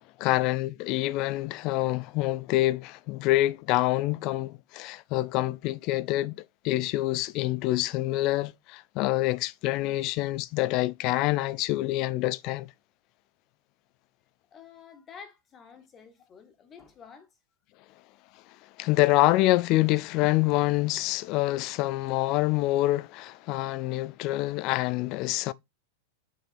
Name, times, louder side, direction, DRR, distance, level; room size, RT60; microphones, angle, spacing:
voice 1, 0.0-6.4 6.6-12.7 18.8-25.5, left 17 dB, 40° left, 0.4 m, -26 dB
voice 2, 14.5-17.3 17.8-18.0, left 6 dB, 25° left, 1.6 m, -50 dB
6.2 x 5.5 x 4.3 m
figure-of-eight pair, 90°, 0 cm